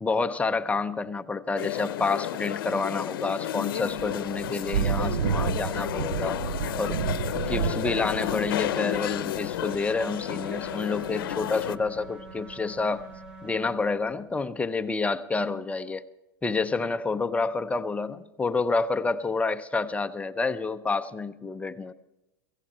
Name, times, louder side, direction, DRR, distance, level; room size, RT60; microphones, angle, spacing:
voice 1, 0.0-6.4 6.8-7.0 7.3-13.1 13.4-16.0 16.4-21.9, left 4 dB, 10° left, 11 dB, 0.6 m, -28 dB
sound 1, 1.6-11.8, left 13 dB, 75° left, 0.7 m, -32 dB
Thunder / Rain, 3.8-13.3, right 8 dB, 85° right, 0.6 m, -32 dB
sound 2, 9.6-13.7, right 1 dB, 50° right, 3.4 m, -45 dB
16.5 x 16.0 x 4.3 m, 0.98 s
supercardioid pair, 120°, 12 cm